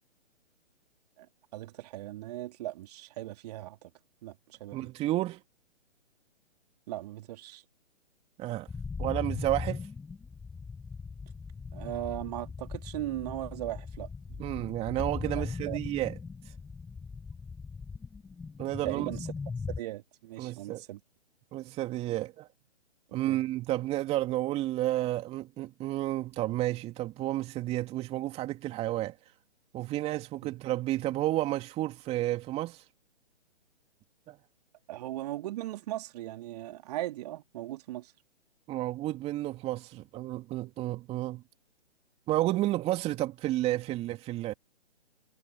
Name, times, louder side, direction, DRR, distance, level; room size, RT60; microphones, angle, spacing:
voice 1, 1.5-3.9 4.2-4.9 6.9-7.6 11.7-14.1 15.3-15.8 18.8-19.3 19.8-21.0 23.3-23.4 30.4-30.5 34.9-38.1, right 15 dB, 35° right, 3.3 m, -38 dB
voice 2, 4.7-5.4 8.4-8.7 9.0-9.8 14.3-16.2 18.6-19.1 20.4-20.8 21.5-22.5 23.1-29.2 29.7-32.8 34.3-34.4 38.7-41.4 42.3-44.5, right 15 dB, 20° right, 2.7 m, -31 dB
sound 1, 8.7-19.8, left 5 dB, 5° left, 0.6 m, -39 dB
figure-of-eight pair, 135°, 34 cm